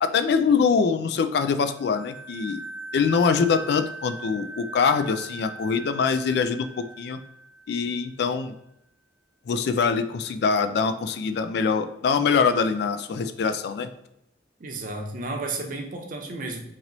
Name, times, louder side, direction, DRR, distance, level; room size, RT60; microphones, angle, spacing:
voice 1, 0.0-2.6 2.9-7.2 7.7-8.5 9.5-13.9, left 5 dB, 60° left, 10 dB, 0.3 m, -24 dB
sound 1, 1.6-8.1, right 2 dB, 10° right, 0.4 m, -40 dB
voice 2, 14.6-16.7, right 2 dB, 50° right, 2 dB, 0.7 m, -32 dB
3.0 x 2.9 x 3.9 m, 0.82 s
head